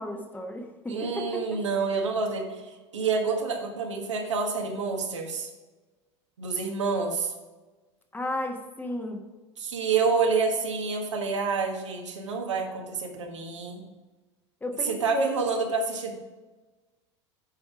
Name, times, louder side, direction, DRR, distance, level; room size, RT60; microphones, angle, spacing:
voice 1, 0.0-1.6 8.1-9.2 14.6-15.4, equal, 10° left, 3 dB, 1.4 m, -33 dB
voice 2, 0.9-2.6 2.9-5.5 6.4-7.3 9.6-13.8 14.8-16.2, right 4 dB, 75° right, 1 dB, 1.5 m, -28 dB
9.8 x 5.3 x 4.9 m, 1.2 s
figure-of-eight pair, 80°, 15 cm